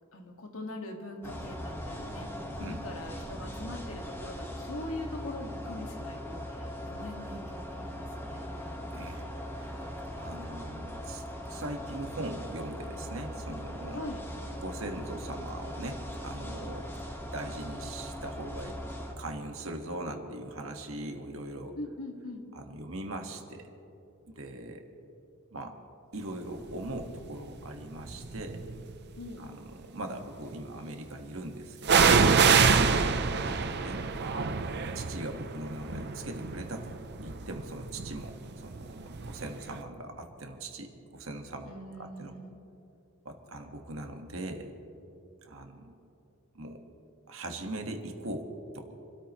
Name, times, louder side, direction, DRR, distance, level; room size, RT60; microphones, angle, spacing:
voice 1, 0.1-8.8 13.9-14.2 21.8-22.4 29.2-29.5 32.4-32.9 41.6-42.6, left 1 dB, 85° left, 2 dB, 2.0 m, -42 dB
sound 1, 1.2-19.1, equal, 10° left, 1.5 m, -40 dB
voice 2, 8.9-14.0 14.6-16.9 17.3-18.8 19.2-21.8 22.5-23.7 24.3-24.9 25.5-25.7 26.1-28.6 29.4-32.2 33.4-36.9 37.2-41.7 42.0-42.3 43.2-44.7 45.4-46.0 46.5-46.8 47.3-48.5 48.7-48.9, right 1 dB, 70° right, 4 dB, 1.7 m, -40 dB
sound 2, 26.9-27.3 28.0-28.9 31.8-39.5 39.8-39.9, right 5 dB, 55° right, 0.7 m, -26 dB
28.0 x 13.0 x 3.1 m, 2.8 s
head